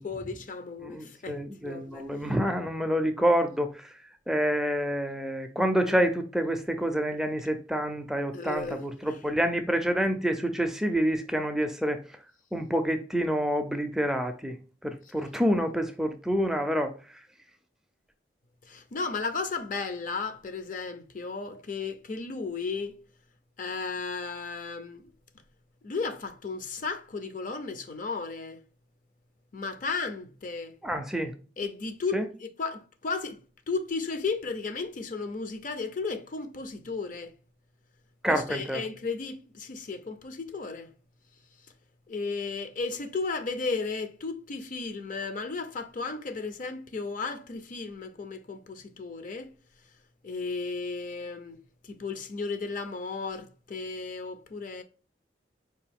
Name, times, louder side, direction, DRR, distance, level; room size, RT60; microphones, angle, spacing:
voice 1, 0.0-2.1 8.3-8.8 18.7-23.0 23.6-25.1 25.8-28.6 29.5-30.7 31.6-32.2 32.6-33.4 33.7-37.3 38.3-40.9 42.1-49.5 50.2-51.6 51.9-54.8, left 4 dB, 50° left, 0.5 m, -34 dB
voice 2, 0.8-3.9 4.3-12.0 12.5-14.6 14.8-16.9 30.8-31.3 32.1-32.3 38.2-38.8, equal, 5° right, 0.4 m, -27 dB
4.5 x 2.6 x 3.4 m
head